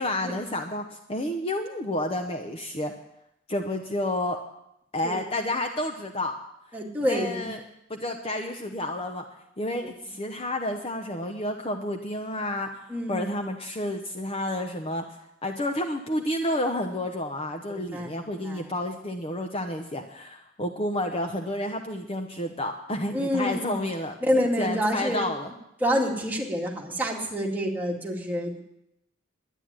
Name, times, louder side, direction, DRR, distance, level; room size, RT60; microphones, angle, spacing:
voice 1, 0.0-2.9 3.5-4.4 4.9-6.3 7.1-7.6 7.9-9.2 9.6-15.0 15.4-24.1 24.6-25.5, left 1 dB, 30° left, 5 dB, 0.9 m, -30 dB
voice 2, 6.7-7.5 12.9-13.3 17.7-18.7 23.1-23.9 24.2-25.3 25.8-28.6, equal, 10° right, -2 dB, 2.1 m, -28 dB
11.5 x 10.0 x 8.9 m, 0.82 s
head